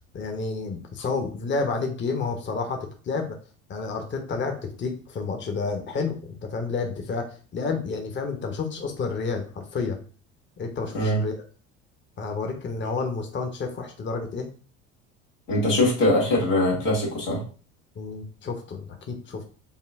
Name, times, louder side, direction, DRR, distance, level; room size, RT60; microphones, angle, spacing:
voice 1, 0.1-3.4 3.7-10.0 10.6-11.4 12.2-14.5 18.0-19.4, left 4 dB, 30° left, 4 dB, 0.9 m, -30 dB
voice 2, 15.5-17.4, left 1 dB, 90° left, -5 dB, 1.9 m, -22 dB
5.5 x 2.2 x 3.5 m, 0.39 s
hypercardioid pair, 70°, 37 cm